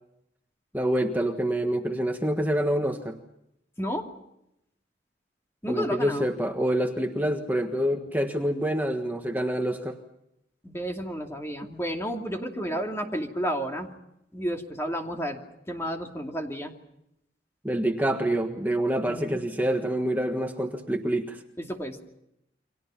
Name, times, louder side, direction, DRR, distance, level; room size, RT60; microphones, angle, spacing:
voice 1, 0.7-3.2 5.7-10.0 17.6-21.4, right 1 dB, 10° right, 4 dB, 1.5 m, -26 dB
voice 2, 3.8-4.1 5.6-6.3 10.6-13.9 14.3-15.4 15.7-16.7 19.1-19.4 21.6-22.0, equal, 15° left, 2 dB, 2.6 m, -31 dB
29.5 x 24.5 x 5.8 m, 0.81 s
head